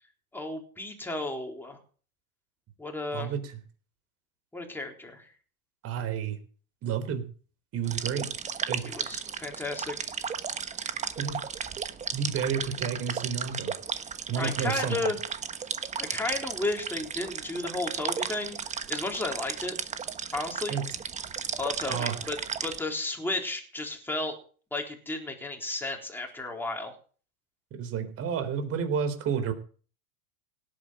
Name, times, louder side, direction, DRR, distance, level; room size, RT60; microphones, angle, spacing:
voice 1, 0.3-1.8 2.8-3.3 4.5-5.3 8.8-10.1 14.4-15.2 16.0-19.8 20.3-20.8 21.6-22.4 22.6-24.4 24.7-26.9, left 2 dB, 5° left, 2 dB, 3.8 m, -33 dB
voice 2, 3.1-3.6 5.8-6.4 6.8-7.2 7.7-8.3 8.7-9.1 11.2-11.4 12.1-13.7 14.3-15.0 20.7-20.9 21.9-22.3 27.7-29.5, right 7 dB, 30° right, 9 dB, 3.7 m, -31 dB
sound 1, 7.9-22.8, right 6 dB, 15° right, 1.2 m, -35 dB
17.5 x 8.8 x 7.8 m, 0.42 s
supercardioid pair, 135°, 45 cm